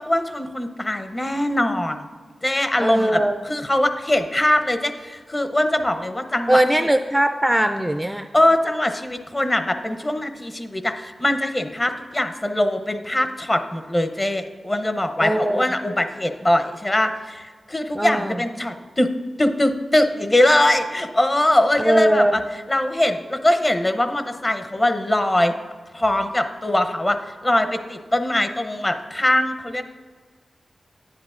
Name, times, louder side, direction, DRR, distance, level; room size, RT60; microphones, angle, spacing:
voice 1, 0.0-2.1 2.4-6.9 8.3-19.1 19.4-22.4 22.7-25.5 25.9-29.8, left 1 dB, 25° left, 8 dB, 0.7 m, -22 dB
voice 2, 2.8-3.4 6.5-8.3 15.2-15.6 17.9-18.4 21.8-22.4, right 1 dB, 10° right, 7 dB, 0.3 m, -20 dB
10.0 x 10.0 x 2.4 m, 1.5 s
cardioid pair, 65°, 0 cm